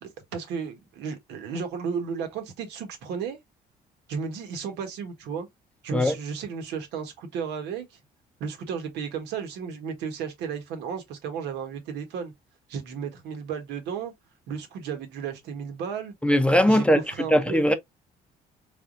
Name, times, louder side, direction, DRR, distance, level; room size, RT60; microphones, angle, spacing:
voice 1, 0.0-3.4 4.1-5.5 5.8-7.8 8.4-12.3 12.7-14.1 14.5-16.1 16.7-17.7, right 6 dB, 85° right, 1.5 m, -33 dB
voice 2, 16.2-17.0 17.3-17.7, equal, 5° left, 0.6 m, -19 dB
4.2 x 3.5 x 2.6 m
cardioid pair, 110°, 17 cm